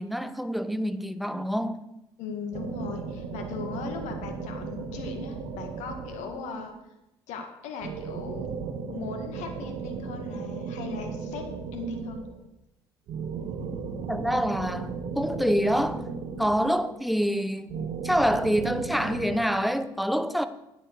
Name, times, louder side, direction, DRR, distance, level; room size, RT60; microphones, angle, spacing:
voice 1, 0.0-1.8 14.1-16.1 16.4-17.8 18.0-20.5, equal, ahead, 1.0 m, -26 dB
voice 2, 2.2-6.7 7.3-8.5 8.9-11.5 11.7-12.2, left 4 dB, 70° left, 1.9 m, -38 dB
sound 1, 2.5-6.7 7.8-12.5 13.1-17.1 17.7-19.4, right 5 dB, 65° right, 1.4 m, -36 dB
9.4 x 7.9 x 6.5 m
hypercardioid pair, 55°, 12 cm